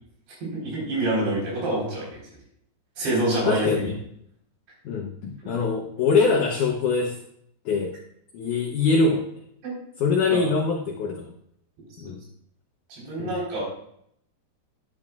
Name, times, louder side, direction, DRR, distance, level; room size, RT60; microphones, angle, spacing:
voice 1, 0.4-2.2 3.0-3.7 9.6-9.7 10.3-10.5 12.9-13.6, right 1 dB, 80° right, -4 dB, 6.1 m, -26 dB
voice 2, 3.5-3.9 4.9-7.2 7.7-8.0 8.3-9.3 10.0-11.3 12.0-12.2 13.2-13.3, left 4 dB, 80° left, 1 dB, 1.8 m, -23 dB
12.0 x 8.8 x 2.4 m, 0.70 s
omnidirectional pair, 4.7 m